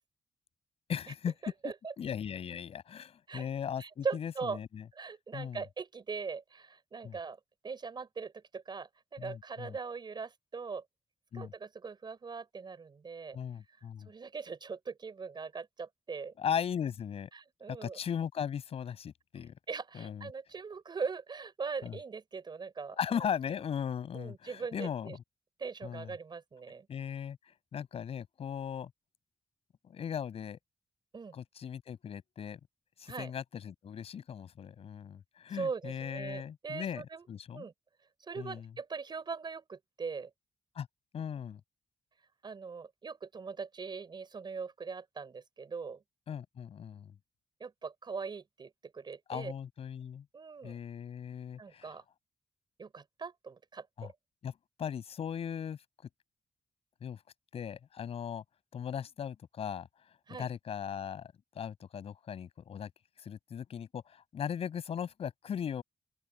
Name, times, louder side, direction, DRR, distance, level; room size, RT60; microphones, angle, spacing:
voice 1, 0.9-1.3 2.0-4.8 5.3-5.6 7.0-7.2 9.2-9.8 11.3-11.5 13.3-14.1 16.4-17.3 17.7-19.5 19.9-20.3 21.8-22.0 23.0-25.2 25.8-26.1 26.9-27.4 27.7-28.9 29.8-30.6 31.3-32.6 33.0-37.0 37.3-37.7 38.4-38.7 40.7-40.9 41.1-41.6 46.3-47.1 49.3-50.2 50.6-51.9 54.0-54.1 54.4-54.5 54.8-55.8 57.0-57.2 57.5-58.4 58.7-59.9 60.4-62.9 63.2-65.8, left 8 dB, 75° left, 7.9 m, -38 dB
voice 2, 1.4-1.9 3.3-3.5 3.8-4.6 4.9-7.4 7.6-10.8 11.3-13.4 14.1-16.3 17.3-18.0 19.7-23.3 24.1-25.2 25.6-26.9 31.1-31.4 33.1-33.3 35.5-37.3 37.5-37.7 38.2-40.3 42.4-46.0 47.6-49.5 50.3-50.7 51.6-52.0 52.8-54.1 60.3-60.5, right 5 dB, 50° right, 4.8 m, -41 dB
open air
cardioid pair, 80°, 10 cm